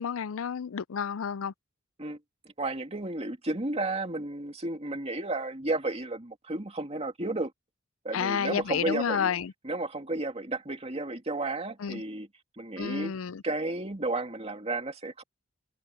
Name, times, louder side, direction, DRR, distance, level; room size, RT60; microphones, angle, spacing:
voice 1, 0.0-1.5 8.1-9.5 11.8-12.0 12.8-13.4, left 7 dB, 80° left, 0.5 m, -30 dB
voice 2, 2.6-7.5 8.0-9.3 9.6-12.3 12.6-13.1 13.4-15.2, right 2 dB, 30° right, 2.5 m, -32 dB
head